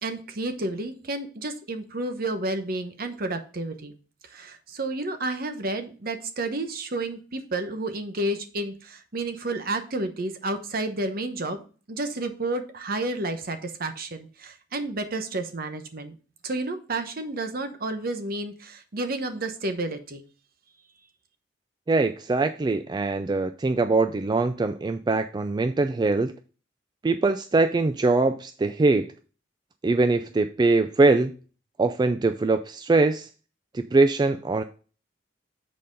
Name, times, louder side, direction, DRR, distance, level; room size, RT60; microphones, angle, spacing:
voice 1, 0.0-4.0 4.3-11.6 11.9-16.1 16.4-20.2, right 2 dB, 55° right, 8 dB, 1.0 m, -31 dB
voice 2, 21.9-26.3 27.0-29.1 29.8-31.3 31.8-33.3 33.7-34.6, right 3 dB, 25° right, 8 dB, 0.3 m, -22 dB
7.5 x 4.2 x 5.2 m, 0.38 s
head